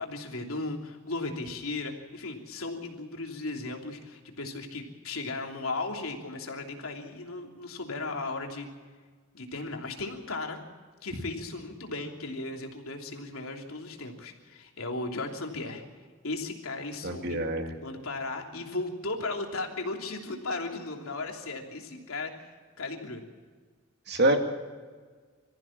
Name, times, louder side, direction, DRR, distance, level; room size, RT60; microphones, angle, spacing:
voice 1, 0.0-8.7 9.3-10.6 11.0-15.8 16.2-17.4 17.8-22.5 22.8-23.2, left 3 dB, 80° left, 2 dB, 3.1 m, -36 dB
voice 2, 17.0-17.7 24.1-24.4, right 1 dB, 50° right, 4 dB, 2.3 m, -25 dB
24.0 x 15.0 x 7.3 m, 1.5 s
head